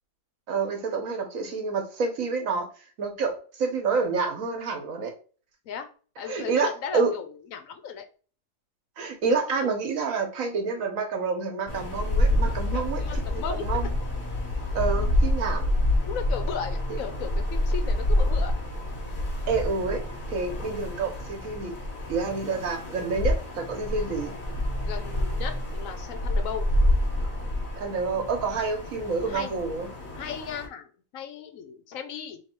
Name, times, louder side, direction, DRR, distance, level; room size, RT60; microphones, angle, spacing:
voice 1, 0.5-2.7 3.0-5.1 6.3-7.1 9.0-13.0 13.3-13.9 14.7-15.7 16.9-17.0 19.5-21.7 22.1-24.3 27.8-29.9, right 4 dB, 85° right, 4 dB, 1.4 m, -28 dB
voice 2, 6.2-8.0 12.4-13.9 16.0-18.5 24.8-26.7 29.3-29.5 30.2-30.9 31.1-32.4, left 7 dB, 85° left, 7 dB, 1.2 m, -36 dB
sound 1, 11.7-30.7, left 1 dB, 40° left, 1.2 m, -28 dB
3.2 x 3.2 x 4.4 m, 0.39 s
omnidirectional pair, 1.4 m